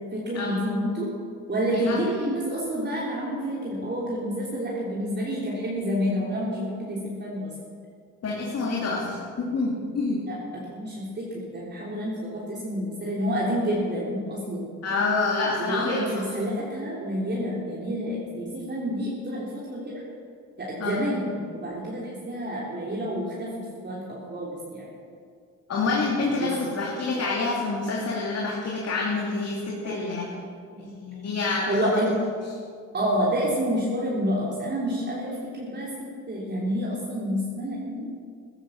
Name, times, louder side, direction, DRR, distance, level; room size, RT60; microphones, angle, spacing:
voice 1, 0.1-1.1 1.5-7.5 10.3-10.4 10.7-14.8 15.6-20.0 20.6-24.9 26.4-26.5 29.8-30.4 30.7-30.9 31.7-32.2 32.9-38.1, equal, 35° right, -5 dB, 3.6 m, -29 dB
voice 2, 8.2-10.2 14.8-16.2 20.8-21.0 25.7-30.3 30.8-32.0, left 3 dB, 55° left, -3 dB, 2.7 m, -27 dB
15.0 x 11.0 x 7.2 m, 2.1 s
cardioid pair, 90°, 30 cm